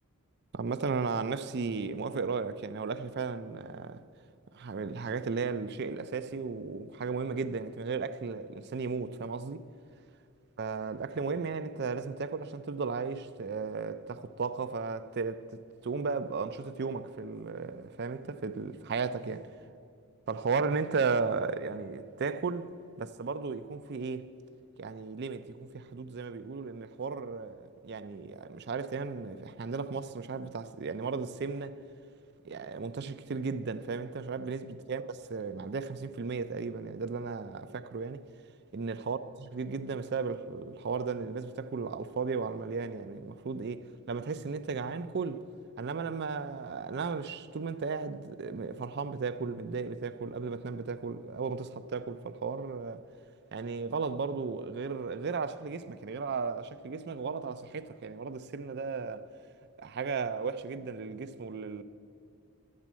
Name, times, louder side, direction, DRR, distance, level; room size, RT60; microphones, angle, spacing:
voice 1, 0.5-4.0 4.5-9.6 10.6-15.5 15.8-19.5 20.3-22.7 23.0-24.3 24.8-31.8 32.4-38.2 38.7-45.4 45.8-53.1 53.5-59.3 59.8-61.8, right 4 dB, 50° right, 0.5 m, -35 dB
11.5 x 7.5 x 8.3 m
head